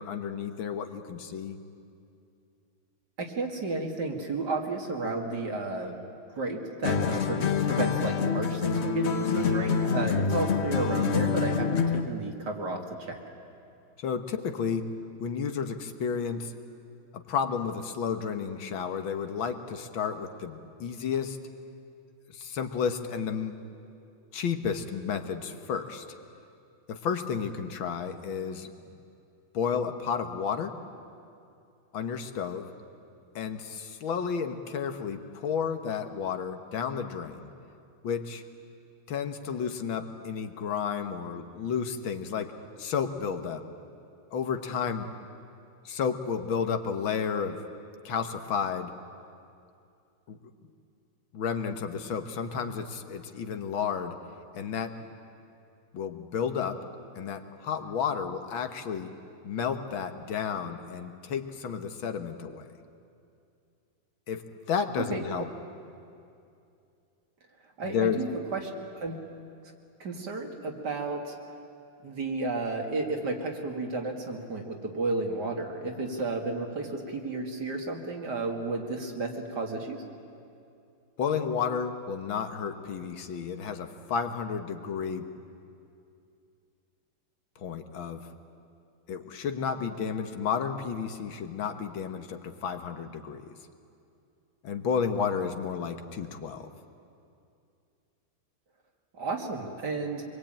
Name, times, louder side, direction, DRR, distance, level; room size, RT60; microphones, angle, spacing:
voice 1, 0.0-1.6 14.0-14.9 15.2-16.5 17.1-21.4 22.3-23.5 24.3-26.1 26.9-28.7 29.5-30.8 31.9-32.7 33.4-37.5 38.0-38.4 39.1-42.5 42.8-43.6 44.3-45.1 45.9-47.6 48.1-48.9 50.3-50.4 51.3-54.2 54.5-55.0 55.9-56.8 57.2-59.1 59.4-62.7 64.3-65.5 67.8-68.2 81.2-85.3 87.6-88.2 89.1-93.5 94.6-96.7, left 6 dB, 80° left, 7 dB, 2.0 m, -32 dB
voice 2, 3.2-6.0 6.4-13.2 65.0-65.2 67.8-69.2 70.0-71.4 72.0-80.0 99.1-100.2, right 3 dB, 55° right, 2 dB, 2.7 m, -32 dB
sound 1, 6.8-12.2, left 6 dB, 45° left, 0.9 m, -27 dB
25.5 x 22.0 x 8.9 m, 2.6 s
omnidirectional pair, 2.2 m